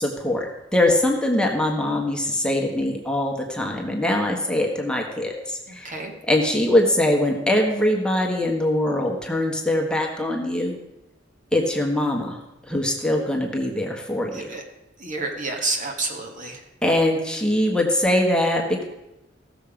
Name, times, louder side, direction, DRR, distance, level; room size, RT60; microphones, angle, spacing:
voice 1, 0.0-6.0 6.3-10.8 11.5-12.4 12.7-14.5 16.8-18.8, left 1 dB, 5° left, 0 dB, 1.4 m, -22 dB
voice 2, 5.7-6.1 14.3-14.6 15.0-16.6, right 3 dB, 45° right, 2 dB, 1.7 m, -29 dB
16.5 x 7.1 x 5.0 m, 0.93 s
head